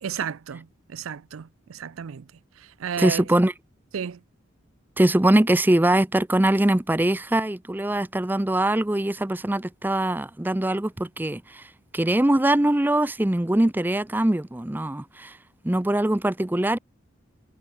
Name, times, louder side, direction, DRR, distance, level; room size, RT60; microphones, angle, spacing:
voice 1, 0.0-2.3 2.6-3.4 3.9-4.2, right 7 dB, 90° right, 0.5 m, -33 dB
voice 2, 3.0-3.5 5.0-11.7 11.9-15.4 15.6-16.8, right 1 dB, 10° right, 0.5 m, -22 dB
head